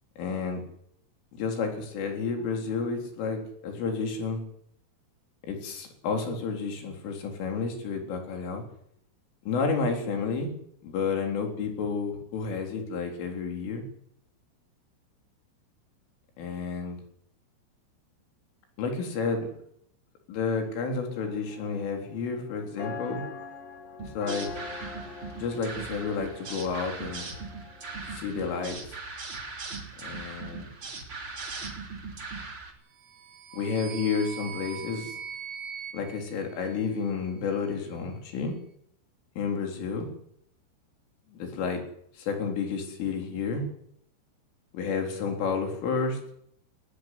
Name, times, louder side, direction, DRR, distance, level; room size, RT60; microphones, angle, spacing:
voice 1, 0.2-0.6 1.3-4.4 5.5-8.6 9.5-10.5 10.8-13.8 16.4-17.0 18.8-19.5 20.3-23.2 24.2-24.5 25.4-27.3 28.1-29.0 30.0-30.7 33.5-35.2 35.9-38.5 39.4-40.1 41.3-41.8 42.1-43.6 44.7-46.2, left 5 dB, 80° left, 3 dB, 6.4 m, -31 dB
sound 1, 21.1-28.2, left 5 dB, 55° left, 3.5 m, -43 dB
sound 2, 24.0-32.7, right 4 dB, 30° right, 3.7 m, -39 dB
sound 3, 32.9-37.3, right 8 dB, 70° right, 3.8 m, -42 dB
19.5 x 15.5 x 9.9 m, 0.71 s
omnidirectional pair, 5.6 m